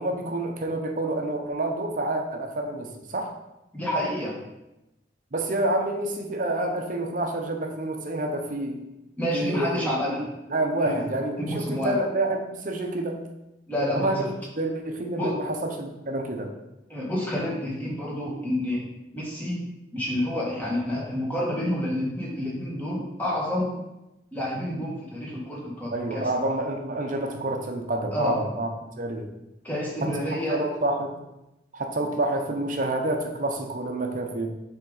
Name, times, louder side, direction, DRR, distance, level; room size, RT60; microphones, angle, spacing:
voice 1, 0.0-3.3 5.3-8.8 9.3-9.8 10.2-13.3 13.9-16.5 20.9-21.1 25.9-28.7 29.0-29.3 30.0-30.2 30.5-31.2 31.7-34.6, right 2 dB, 45° right, 3 dB, 0.7 m, -28 dB
voice 2, 3.7-4.4 9.2-10.3 10.8-11.0 11.4-11.9 13.7-14.3 15.1-15.4 16.9-18.8 19.1-19.6 19.9-23.7 24.3-26.3 28.1-28.4 29.6-30.6, left 1 dB, 10° left, -5 dB, 1.5 m, -29 dB
7.1 x 3.6 x 3.9 m, 0.94 s
head